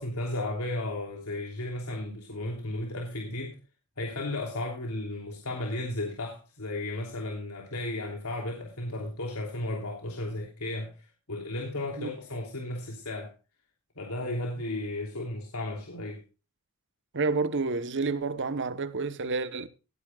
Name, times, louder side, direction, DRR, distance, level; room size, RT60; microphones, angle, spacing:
voice 1, 0.0-3.6 4.0-10.9 11.3-13.3 14.0-16.2, left 1 dB, 80° left, 3.1 m, -34 dB
voice 2, 17.1-19.7, right 3 dB, 55° right, 1.0 m, -29 dB
18.0 x 10.0 x 2.4 m
head